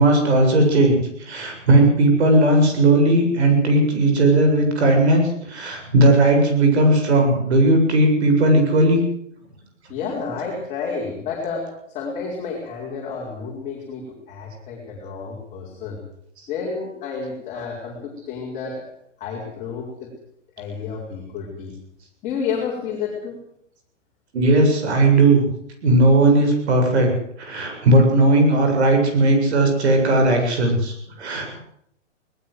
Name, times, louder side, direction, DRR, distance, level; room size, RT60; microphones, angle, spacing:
voice 1, 0.0-9.0 24.3-25.5 25.8-27.1 27.4-31.6, right 2 dB, 60° right, 4 dB, 7.6 m, -17 dB
voice 2, 9.9-11.7 11.9-16.0 16.5-18.9 19.2-20.1 20.6-21.8 22.2-23.4, left 5 dB, 20° left, -3 dB, 5.2 m, -30 dB
21.0 x 19.0 x 8.1 m, 0.71 s
hypercardioid pair, 160°, 37 cm